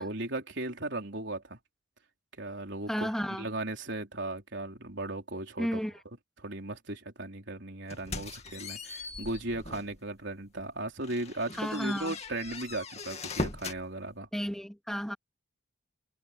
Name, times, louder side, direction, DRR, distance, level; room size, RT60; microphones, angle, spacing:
voice 1, 0.0-1.6 2.4-3.1 3.4-5.8 6.4-14.3, right 2 dB, 60° right, 4.3 m, -37 dB
voice 2, 2.9-3.5 5.6-6.0 11.5-12.1 14.3-15.2, equal, ahead, 2.2 m, -32 dB
sound 1, 7.9-10.0 10.4-10.6 11.0-13.8, left 3 dB, 30° left, 2.4 m, -39 dB
head